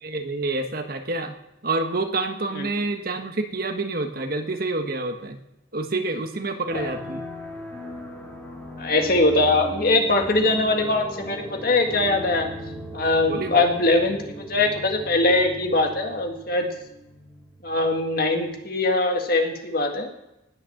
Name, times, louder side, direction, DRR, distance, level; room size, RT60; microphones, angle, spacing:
voice 1, 0.0-1.3 1.6-5.4 5.7-7.2 13.3-13.6, right 2 dB, 50° right, 6 dB, 1.3 m, -28 dB
sound 1, 6.7-18.8, equal, 5° left, 2.3 m, -38 dB
voice 2, 8.8-12.5 12.9-16.7 17.6-20.1, left 2 dB, 55° left, 3 dB, 1.9 m, -22 dB
19.0 x 6.4 x 7.1 m, 0.89 s
head